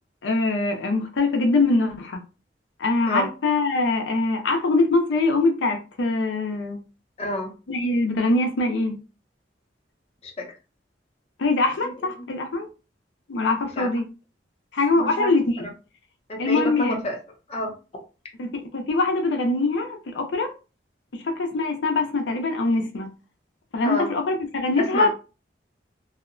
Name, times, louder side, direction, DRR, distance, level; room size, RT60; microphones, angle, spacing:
voice 1, 0.2-2.2 2.8-6.8 7.7-8.9 11.4-12.7 13.3-14.0 14.7-15.7 16.4-17.0 17.6-17.7 18.4-20.5 21.1-23.1 23.7-25.1, left 3 dB, 80° left, 0.5 m, -23 dB
voice 2, 7.2-7.5 10.2-10.5 11.8-12.2 13.8-13.9 15.0-15.3 16.3-17.2 17.5-17.7 23.8-24.1 24.8-25.1, left 1 dB, 35° left, 0.6 m, -28 dB
2.7 x 2.1 x 2.4 m
head